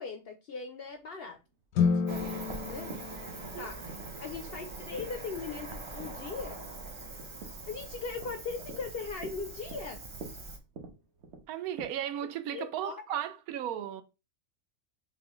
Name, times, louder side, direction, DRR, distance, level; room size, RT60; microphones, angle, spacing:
voice 1, 0.0-1.4 1.7-2.4 2.7-2.9 3.6-3.8 4.2-6.7 7.7-10.0 12.5-13.2, left 5 dB, 65° left, 0.6 m, -39 dB
sound 1, 0.8-11.8, right 4 dB, 55° right, 1.2 m, -50 dB
sound 2, 1.7-4.1, left 6 dB, 80° left, 1.1 m, -31 dB
Cricket, 2.1-10.6, right 3 dB, 40° right, 0.4 m, -43 dB
voice 2, 11.5-14.0, right 11 dB, 90° right, 1.0 m, -35 dB
6.0 x 2.3 x 3.0 m
omnidirectional pair, 1.5 m